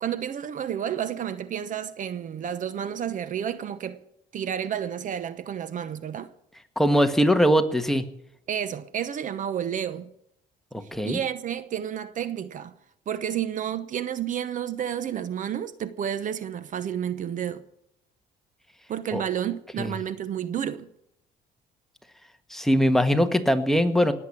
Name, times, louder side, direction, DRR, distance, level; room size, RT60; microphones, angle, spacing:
voice 1, 0.0-4.0 4.3-6.3 8.5-10.1 11.0-12.7 13.1-17.6 18.9-20.9, right 9 dB, 50° right, 0.9 m, -31 dB
voice 2, 6.8-8.0 10.9-11.2 19.1-19.2 19.8-19.9 22.5-24.1, equal, ahead, 1.5 m, -21 dB
19.0 x 8.1 x 8.5 m
cardioid pair, 110°, 17 cm